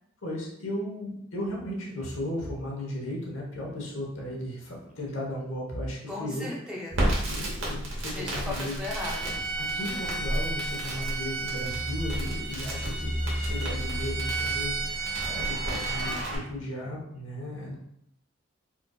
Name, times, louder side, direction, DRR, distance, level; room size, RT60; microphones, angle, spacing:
voice 1, 0.2-6.5 7.0-8.7 9.7-17.7, left 1 dB, 75° left, -2 dB, 1.0 m, -36 dB
voice 2, 6.1-7.2 8.1-9.4, left 2 dB, 5° right, -3 dB, 0.5 m, -36 dB
Crackle, 6.9-16.4, right 1 dB, 60° right, 1.0 m, -33 dB
Bowed string instrument, 8.8-16.2, right 4 dB, 25° right, 1.0 m, -34 dB
sound 1, 11.7-16.7, equal, 40° left, 1.2 m, -36 dB
4.5 x 2.5 x 2.3 m, 0.76 s
head